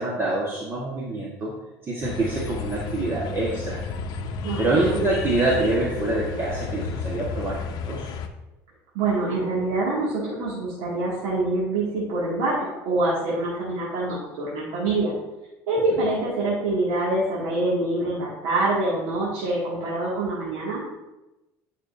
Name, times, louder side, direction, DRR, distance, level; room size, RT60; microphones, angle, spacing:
voice 1, 0.0-1.5 1.9-3.8 4.6-8.1, right 2 dB, 30° right, -5 dB, 1.5 m, -26 dB
sound 1, 2.0-8.3, left 5 dB, 60° left, 0.7 m, -32 dB
voice 2, 4.4-5.0 8.9-15.1 15.7-20.8, right 2 dB, 80° right, -8 dB, 2.3 m, -25 dB
9.7 x 5.7 x 2.7 m, 0.97 s
supercardioid pair, 110°, 8 cm